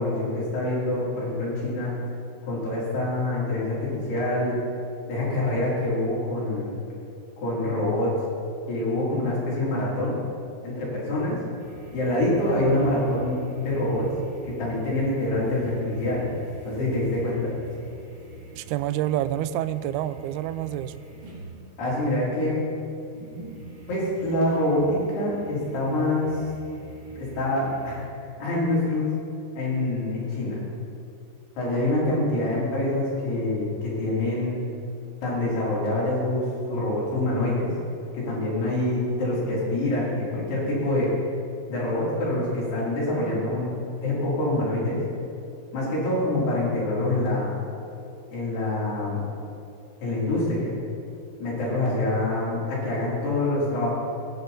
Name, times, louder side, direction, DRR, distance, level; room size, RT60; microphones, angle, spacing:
voice 1, 0.0-1.9 2.4-4.6 5.1-6.8 7.4-8.1 8.7-10.2 10.6-11.4 11.9-14.1 14.4-16.3 16.7-17.6 21.8-22.6 23.9-26.4 27.1-28.0 28.4-29.1 29.6-30.6 31.6-34.6 35.2-37.7 38.1-41.1 41.7-43.7 44.0-45.0 45.7-47.6 48.3-49.2 50.0-50.7 51.4-53.9, left 1 dB, 70° left, -7 dB, 5.4 m, -25 dB
sound 1, 11.6-28.1, right 2 dB, 65° right, 5.4 m, -45 dB
voice 2, 18.6-21.0, right 12 dB, 85° right, 13 dB, 2.3 m, -28 dB
20.0 x 10.0 x 4.0 m, 2.6 s
omnidirectional pair, 4.9 m